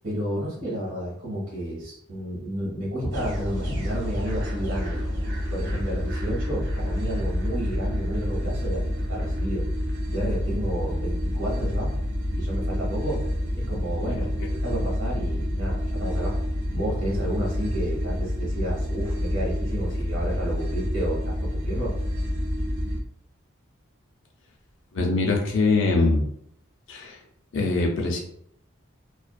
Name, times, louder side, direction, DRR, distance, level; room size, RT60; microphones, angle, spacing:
voice 1, 0.0-5.0 5.5-9.6 10.1-11.9 12.3-13.2 13.5-16.4 16.7-21.9, right 1 dB, 75° right, -3 dB, 1.2 m, -31 dB
sound 1, 3.1-23.0, left 1 dB, 55° right, 0.5 m, -28 dB
voice 2, 24.9-26.2 26.9-27.2 27.5-28.2, left 3 dB, 65° left, 0 dB, 0.6 m, -22 dB
2.5 x 2.3 x 2.3 m, 0.72 s
head